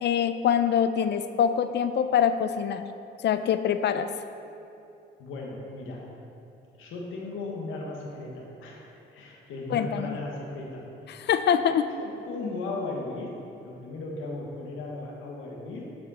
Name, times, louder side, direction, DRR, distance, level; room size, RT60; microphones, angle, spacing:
voice 1, 0.0-2.8 3.2-4.1 9.7-10.2 11.1-11.9, left 8 dB, 60° left, 10 dB, 0.5 m, -24 dB
voice 2, 5.2-6.1 6.8-10.9 12.0-13.3 13.6-16.0, left 2 dB, 85° left, -1 dB, 1.6 m, -36 dB
12.5 x 5.2 x 4.3 m, 2.7 s
cardioid pair, 90°, 20 cm